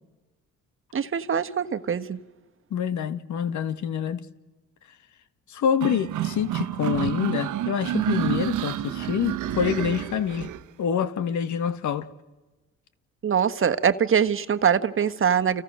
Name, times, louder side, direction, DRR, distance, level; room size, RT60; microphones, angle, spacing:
voice 1, 0.9-2.2 13.2-15.6, right 7 dB, 45° right, 1.3 m, -23 dB
voice 2, 2.7-4.2 5.5-10.5 10.8-12.1, left 8 dB, 70° left, 1.8 m, -26 dB
sound 1, 5.8-10.6, right 12 dB, 85° right, 1.3 m, -29 dB
30.0 x 29.0 x 6.5 m
cardioid pair, 90°, 30 cm